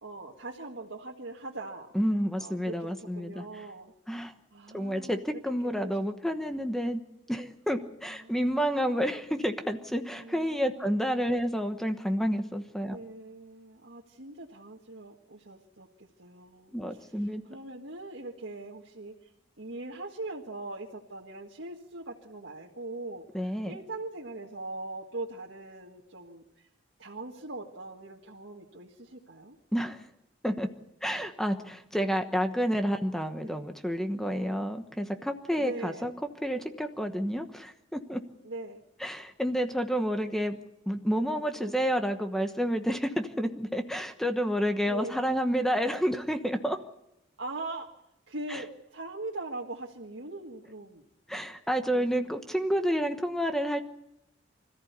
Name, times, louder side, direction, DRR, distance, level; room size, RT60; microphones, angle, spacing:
voice 1, 0.0-1.9 2.4-3.9 4.5-6.7 8.1-9.0 10.1-11.0 12.9-19.1 19.6-26.4 27.0-29.6 33.4-33.6 35.5-36.1 38.4-38.8 41.5-41.8 44.8-45.2 47.4-47.9 48.3-51.0 51.9-52.5, right 2 dB, 80° right, -2 dB, 1.8 m, -41 dB
voice 2, 1.9-3.4 4.1-4.3 4.7-7.0 7.3-13.0 16.7-17.4 23.3-23.8 29.7-30.0 30.4-30.7 31.0-36.1 36.4-38.2 39.0-40.6 40.9-46.8 48.5-48.6 51.3-53.8, equal, ahead, 6 dB, 1.2 m, -29 dB
25.5 x 14.5 x 8.2 m, 0.83 s
head